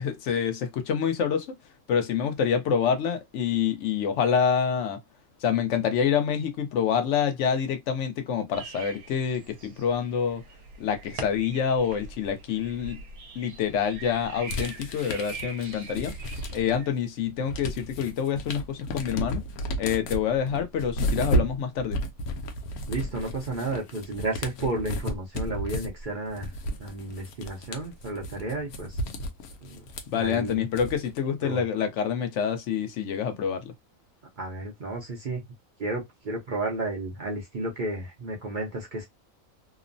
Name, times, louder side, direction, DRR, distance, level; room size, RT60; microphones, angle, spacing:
voice 1, 0.0-1.5 1.9-5.0 5.4-10.4 10.8-13.0 13.4-16.1 16.5-19.4 19.8-22.0 30.1-33.7, left 7 dB, 65° left, 0.8 m, -27 dB
sound 1, 8.5-16.9, right 4 dB, 90° right, 1.1 m, -43 dB
sound 2, 14.5-16.9 17.2-31.2, equal, 85° left, 1.1 m, -33 dB
voice 2, 22.9-26.5 26.8-28.9 29.6-29.8 30.2-30.6 31.4-31.6 34.4-35.4 35.8-39.1, right 2 dB, 50° right, 0.6 m, -32 dB
2.9 x 2.0 x 2.5 m
omnidirectional pair, 1.5 m